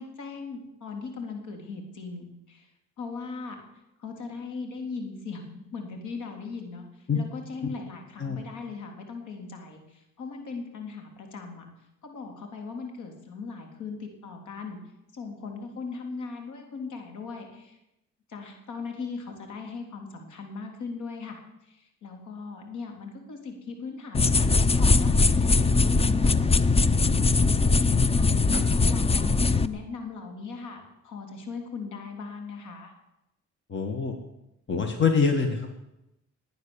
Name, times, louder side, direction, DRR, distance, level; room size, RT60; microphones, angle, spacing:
voice 1, 0.0-2.7 3.0-3.6 4.0-11.7 12.0-14.8 15.1-17.8 18.3-32.9, left 4 dB, 75° left, 4 dB, 3.7 m, -39 dB
sound 1, 24.1-29.7, left 3 dB, 20° left, 0.7 m, -21 dB
voice 2, 33.7-34.1 34.7-35.7, left 5 dB, 40° left, 5 dB, 2.1 m, -24 dB
19.0 x 9.2 x 7.2 m, 0.88 s
cardioid pair, 90°, 30 cm